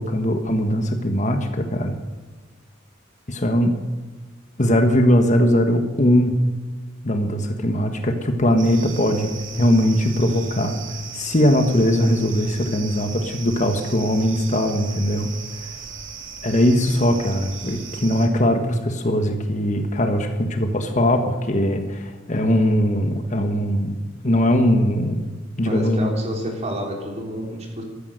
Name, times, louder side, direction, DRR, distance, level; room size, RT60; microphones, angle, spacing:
voice 1, 0.0-1.9 3.3-3.7 4.6-6.4 7.0-15.3 15.6-15.7 16.4-23.9 24.2-25.2 25.6-26.1, equal, 40° left, 6 dB, 1.4 m, -20 dB
sound 1, 8.6-18.3, right 6 dB, 85° right, 2.5 m, -38 dB
voice 2, 25.7-27.8, equal, 35° right, 1 dB, 3.7 m, -29 dB
14.0 x 13.5 x 6.6 m, 1.3 s
head